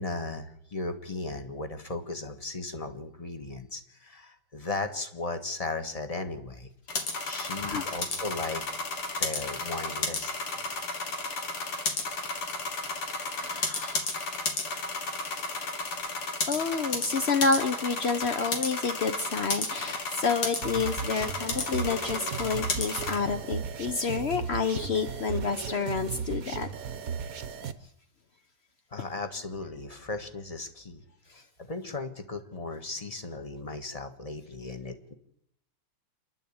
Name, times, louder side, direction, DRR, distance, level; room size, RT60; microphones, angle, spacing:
voice 1, 0.0-6.7 7.2-8.6 9.2-10.3 28.9-31.0 31.6-35.1, left 3 dB, 20° left, 8 dB, 1.4 m, -36 dB
sound 1, 6.9-23.2, left 3 dB, 80° left, 3.5 m, -33 dB
voice 2, 13.1-14.1 16.5-26.7 31.3-31.4, left 5 dB, 60° left, 8 dB, 0.6 m, -29 dB
sound 2, 20.6-27.7, right 7 dB, 50° right, 1.2 m, -36 dB
27.0 x 11.0 x 8.7 m, 0.75 s
omnidirectional pair, 2.4 m